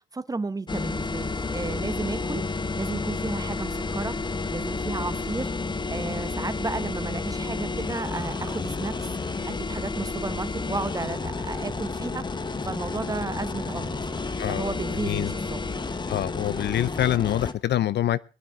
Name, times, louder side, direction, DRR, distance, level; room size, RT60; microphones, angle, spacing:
voice 1, 0.0-4.2 4.5-5.5 5.9-9.1 9.4-12.3 12.6-15.6, right 3 dB, 20° right, 0.8 m, -33 dB
sound 1, 0.7-17.5, left 3 dB, 20° left, 0.9 m, -31 dB
voice 2, 14.4-14.7 15.0-15.3 16.1-18.2, left 12 dB, 60° left, 0.5 m, -25 dB
21.5 x 9.3 x 3.6 m
cardioid pair, 90°, 20 cm